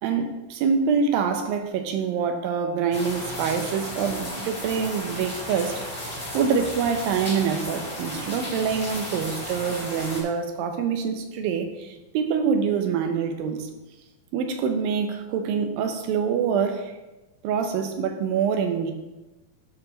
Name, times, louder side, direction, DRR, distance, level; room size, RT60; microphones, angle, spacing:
voice 1, 0.0-5.8 6.3-13.7 14.3-16.9 17.4-18.9, right 6 dB, 90° right, 6 dB, 2.6 m, -25 dB
sound 1, 2.9-10.2, equal, 15° left, 1.8 m, -34 dB
12.0 x 4.8 x 3.9 m, 1.1 s
omnidirectional pair, 4.0 m